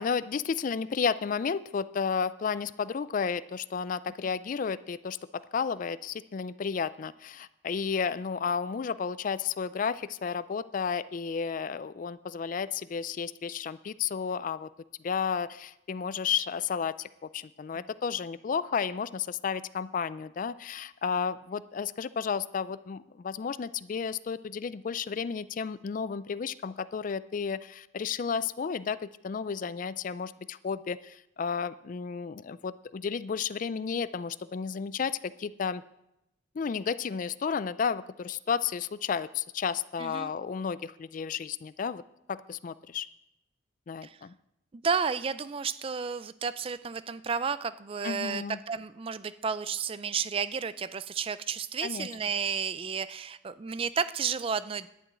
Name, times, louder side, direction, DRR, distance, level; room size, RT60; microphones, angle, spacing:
voice 1, 0.0-14.7 15.0-35.8 36.5-42.0 42.3-43.1 43.9-44.3 48.0-48.6 51.8-52.1, left 6 dB, 45° left, 16 dB, 0.4 m, -32 dB
voice 2, 40.0-40.3 44.0-44.2 44.7-54.9, right 6 dB, 30° right, 15 dB, 0.4 m, -32 dB
11.0 x 6.1 x 8.8 m, 0.85 s
head